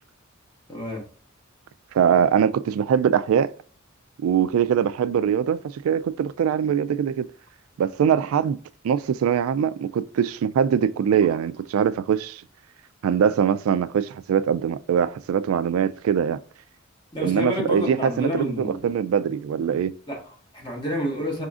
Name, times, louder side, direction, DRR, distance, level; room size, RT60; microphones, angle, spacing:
voice 1, 0.7-1.0 17.1-18.8 20.1-21.5, equal, 25° left, 1.4 m, -29 dB
voice 2, 1.9-3.5 4.2-7.3 7.8-8.6 8.8-12.4 13.0-16.4 17.2-19.9, right 8 dB, 85° right, 0.3 m, -22 dB
4.8 x 3.7 x 2.4 m
head